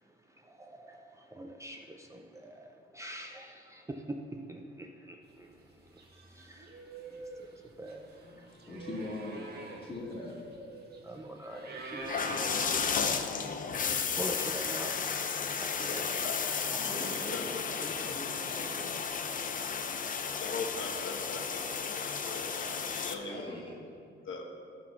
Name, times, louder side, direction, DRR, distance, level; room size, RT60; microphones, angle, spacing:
voice 1, 0.0-8.6 11.0-13.4 13.9-14.9 15.4-16.0, right 1 dB, 15° right, 0.5 m, -45 dB
sound 1, 5.5-5.7 6.0-13.1, right 3 dB, 50° right, 1.2 m, -45 dB
voice 2, 8.7-10.4 16.7-18.9 23.1-23.7, left 1 dB, 25° left, 1.9 m, -42 dB
sound 2, 12.0-23.1, left 6 dB, 40° left, 0.6 m, -33 dB
voice 3, 15.9-16.3 16.7-16.9 17.3-17.4 17.9-18.0 20.4-23.6 24.2-24.4, left 4 dB, 70° left, 1.1 m, -41 dB
12.0 x 4.1 x 5.8 m
cardioid pair, 105°, 21 cm